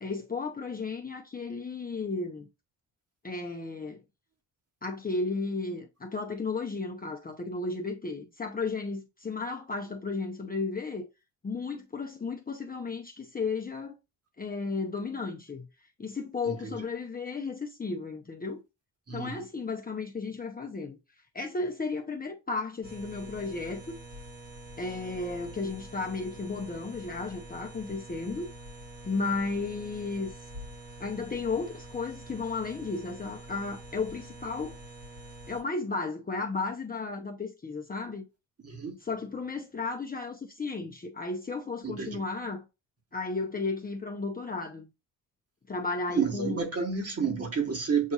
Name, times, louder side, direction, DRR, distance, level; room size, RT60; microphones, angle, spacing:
voice 1, 0.0-2.5 3.2-4.0 4.8-11.1 11.4-13.9 14.4-15.7 16.0-18.6 19.1-21.0 21.3-24.0 24.8-28.5 29.0-30.3 31.0-34.8 35.5-38.2 39.0-42.6 43.1-44.9 45.7-46.6, left 3 dB, 25° left, 0.7 m, -34 dB
voice 2, 16.4-16.9 19.1-19.5 38.6-39.0 41.8-42.3 46.1-48.1, right 6 dB, 40° right, 1.7 m, -30 dB
sound 1, 22.8-35.6, right 2 dB, 85° right, 2.7 m, -46 dB
7.3 x 2.6 x 2.4 m
supercardioid pair, 65°, 39 cm